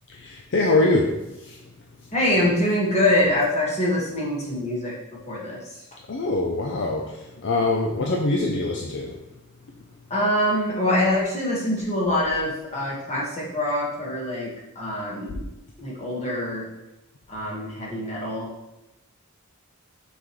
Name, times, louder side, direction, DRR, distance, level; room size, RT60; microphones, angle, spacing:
voice 1, 0.2-1.1 1.4-1.6 6.1-9.1, left 2 dB, 60° left, 0 dB, 0.6 m, -23 dB
voice 2, 2.1-4.9 5.3-5.6 10.1-15.4 15.8-16.7 17.3-18.5, left 1 dB, 30° left, -4 dB, 1.7 m, -24 dB
5.9 x 5.1 x 3.2 m, 0.95 s
head